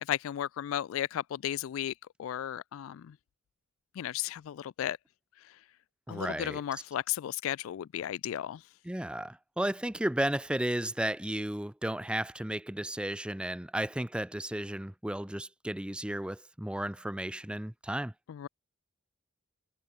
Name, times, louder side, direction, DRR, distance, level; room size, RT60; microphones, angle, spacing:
voice 1, 0.1-1.9 2.2-3.1 4.0-5.0 6.1-8.6 18.3-18.5, left 11 dB, 85° left, 0.3 m, -34 dB
voice 2, 6.1-6.6 8.8-18.1, right 1 dB, 5° right, 0.5 m, -34 dB
head